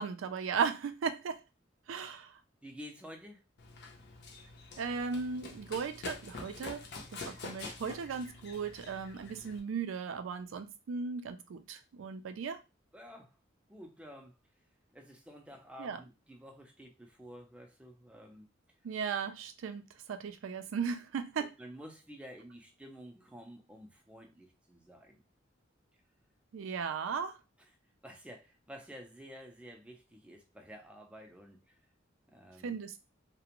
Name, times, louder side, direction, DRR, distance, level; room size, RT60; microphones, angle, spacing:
voice 1, 0.0-1.4 1.9-2.4 4.8-6.8 7.1-12.6 15.8-16.0 18.8-19.8 20.1-21.5 26.5-27.4 32.6-33.0, right 6 dB, 80° right, 0.4 m, -36 dB
voice 2, 2.6-3.4 12.9-13.3 13.7-14.3 14.9-18.5 21.4-25.2 27.6-27.7 28.0-31.8 32.3-32.8, equal, 5° right, 0.4 m, -51 dB
Run, 3.6-9.6, left 3 dB, 55° left, 0.5 m, -46 dB
2.5 x 2.1 x 2.8 m
head